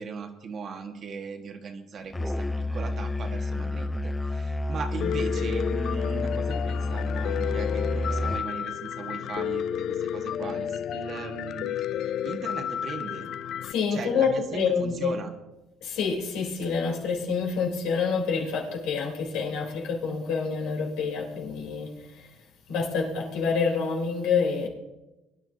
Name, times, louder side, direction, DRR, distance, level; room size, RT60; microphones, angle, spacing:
voice 1, 0.0-11.8 12.2-13.3 13.9-15.3, right 5 dB, 50° right, 1.8 m, -38 dB
Musical instrument, 2.1-8.5, left 2 dB, 15° left, 0.6 m, -30 dB
Piano, 5.0-13.7, left 9 dB, 60° left, 0.4 m, -31 dB
voice 2, 13.6-15.1 15.8-22.0 22.7-24.7, left 5 dB, 80° left, 3.7 m, -27 dB
23.0 x 10.5 x 2.8 m
supercardioid pair, 85°, 0 cm